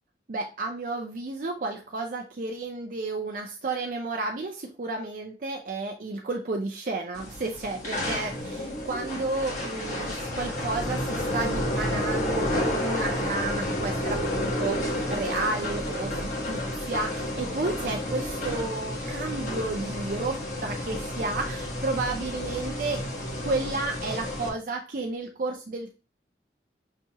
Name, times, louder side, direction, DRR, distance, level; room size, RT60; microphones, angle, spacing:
voice 1, 0.3-23.0 23.4-26.0, right 3 dB, 50° right, 2 dB, 0.5 m, -32 dB
sound 1, 7.1-24.5, left 1 dB, 45° left, 1.2 m, -30 dB
5.7 x 2.8 x 2.8 m, 0.33 s
head